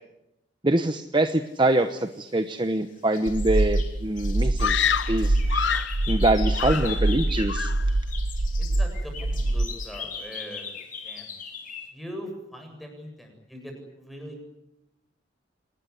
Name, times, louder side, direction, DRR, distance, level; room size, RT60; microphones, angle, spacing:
voice 1, 0.6-4.8 5.1-5.4 6.1-7.7, right 2 dB, 25° right, 9 dB, 1.0 m, -24 dB
sound 1, 2.0-2.8 3.1-7.6 7.9-11.9, left 6 dB, 45° left, 3.7 m, -39 dB
sound 2, 3.3-9.7, right 1 dB, 80° right, 1.0 m, -25 dB
Screaming, 4.6-6.0 6.5-7.2 7.5-7.9, left 7 dB, 80° left, 0.9 m, -27 dB
voice 2, 8.6-10.7 11.0-11.3 11.9-14.4, equal, ahead, 3 dB, 7.6 m, -41 dB
26.5 x 20.0 x 9.8 m, 0.89 s
head